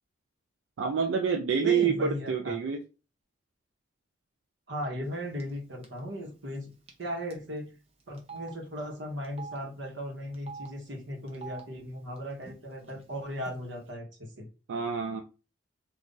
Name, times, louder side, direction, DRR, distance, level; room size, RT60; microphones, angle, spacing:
voice 1, 0.8-2.8 14.7-15.2, right 6 dB, 90° right, 3 dB, 0.4 m, -27 dB
voice 2, 1.6-2.6 4.7-6.7 7.0-7.7 8.1-14.5, equal, 65° right, 1 dB, 1.0 m, -37 dB
Telephone, 5.4-5.6 5.8-6.0 6.9-7.0 7.3-7.4 8.2-8.5 9.2-9.6 10.3-10.7 11.3-11.6 12.4-12.5 12.8-13.5, right 5 dB, 30° right, 0.6 m, -43 dB
2.5 x 2.4 x 3.7 m, 0.32 s
head